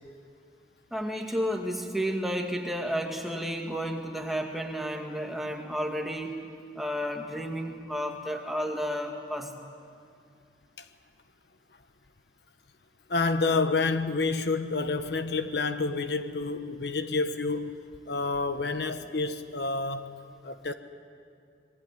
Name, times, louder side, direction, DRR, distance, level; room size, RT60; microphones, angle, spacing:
voice 1, 0.9-6.4 6.7-9.5, equal, ahead, 2 dB, 2.1 m, -32 dB
voice 2, 13.1-17.8 18.1-20.2 20.4-20.7, left 3 dB, 65° left, 9 dB, 1.1 m, -28 dB
26.0 x 22.0 x 9.6 m, 2.4 s
head